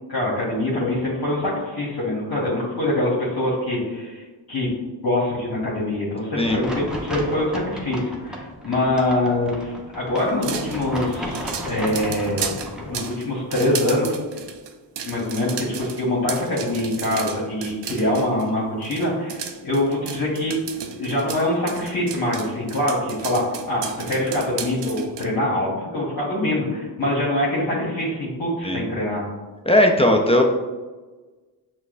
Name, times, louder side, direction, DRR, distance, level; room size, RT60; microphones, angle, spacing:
voice 1, 0.1-4.7 5.0-12.5 12.8-14.1 15.0-20.5 21.0-29.3, left 1 dB, 45° left, -6 dB, 1.2 m, -24 dB
sound 1, 6.4-13.0, equal, ahead, 0.7 m, -34 dB
sound 2, 10.2-18.5 18.8-25.2, right 7 dB, 60° right, 0.5 m, -34 dB
voice 2, 29.7-30.4, left 1 dB, 15° left, 2 dB, 0.3 m, -17 dB
5.8 x 2.1 x 2.5 m, 1.3 s
cardioid pair, 55°, 49 cm